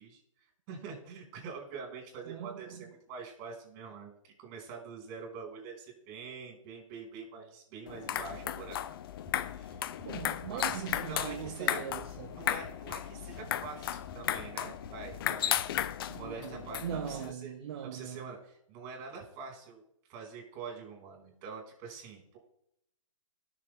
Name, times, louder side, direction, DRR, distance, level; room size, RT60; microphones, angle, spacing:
voice 1, 0.0-8.8 9.5-10.2 10.5-11.8 12.3-15.8 16.1-17.5 17.8-19.8 20.1-22.4, right 5 dB, 30° right, 5.5 m, -45 dB
voice 2, 2.3-2.8 10.0-12.4 16.1-18.3, right 9 dB, 50° right, 0.9 m, -41 dB
sound 1, 7.9-17.3, left 11 dB, 45° left, 0.6 m, -35 dB
sound 2, 9.2-15.6, right 1 dB, 10° left, 3.9 m, -55 dB
17.5 x 7.0 x 3.5 m
hypercardioid pair, 140°, 17 cm